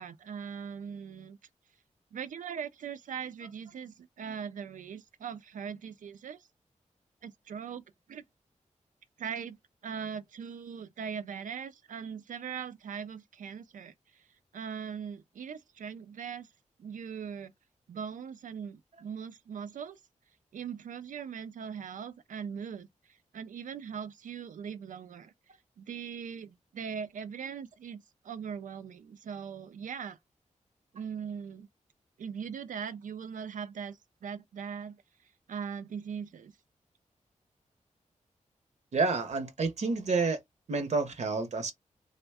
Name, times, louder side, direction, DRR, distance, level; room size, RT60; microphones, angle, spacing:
voice 1, 0.0-1.4 2.1-6.5 7.2-8.2 9.2-9.6 9.8-14.2 14.5-16.5 16.8-17.5 17.9-20.0 20.5-22.9 23.3-25.3 25.8-30.2 30.9-31.7 32.2-35.0 35.5-36.5, right 7 dB, 85° right, 0.4 m, -40 dB
voice 2, 38.9-40.4 40.7-41.7, right 4 dB, 60° right, 0.8 m, -29 dB
3.4 x 2.1 x 3.4 m
wide cardioid pair, 160°, 13 cm